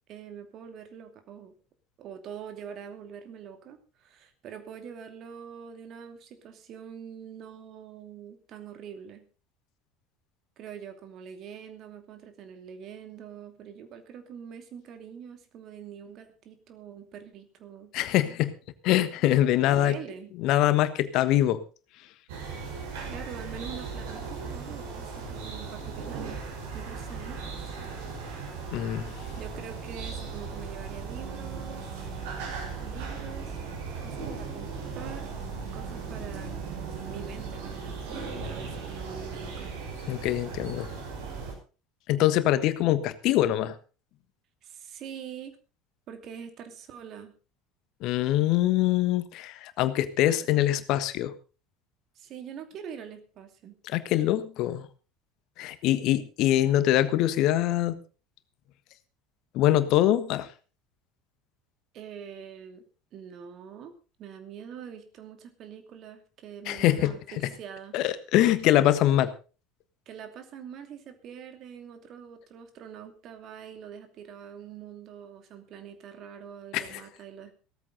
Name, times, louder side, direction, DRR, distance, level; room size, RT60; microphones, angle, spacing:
voice 1, 0.1-1.5 2.0-9.2 10.6-17.9 19.7-20.3 23.1-26.4 26.7-27.9 29.4-32.1 32.8-33.6 34.0-35.3 35.7-36.5 37.0-39.7 44.6-45.6 46.1-47.3 52.2-53.8 61.9-62.8 63.1-63.9 64.2-68.0 70.1-77.5, right 8 dB, 45° right, 8 dB, 2.7 m, -44 dB
voice 2, 17.9-18.5 18.8-20.0 20.4-21.6 28.7-29.1 40.1-40.9 42.1-43.7 48.0-51.3 53.8-54.9 55.6-58.0 59.5-60.5 66.7-67.1 67.4-67.5 67.9-69.3 76.7-77.0, left 13 dB, 55° left, 13 dB, 1.4 m, -24 dB
sound 1, 22.3-41.5, right 5 dB, 65° right, 5.8 m, -37 dB
17.0 x 14.0 x 4.0 m, 0.35 s
figure-of-eight pair, 65°, 0 cm